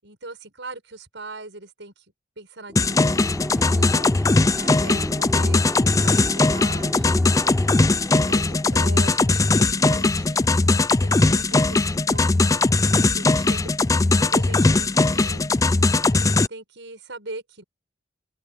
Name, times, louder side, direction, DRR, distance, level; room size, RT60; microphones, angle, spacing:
voice 1, 0.0-2.0 2.4-4.1 4.5-7.1 7.6-7.8 8.2-12.3 13.1-15.5 16.1-17.6, right 2 dB, 70° right, 7.7 m, -40 dB
sound 1, 2.7-10.3, equal, ahead, 7.5 m, -35 dB
sound 2, 2.8-16.5, left 3 dB, 20° left, 0.4 m, -20 dB
open air
head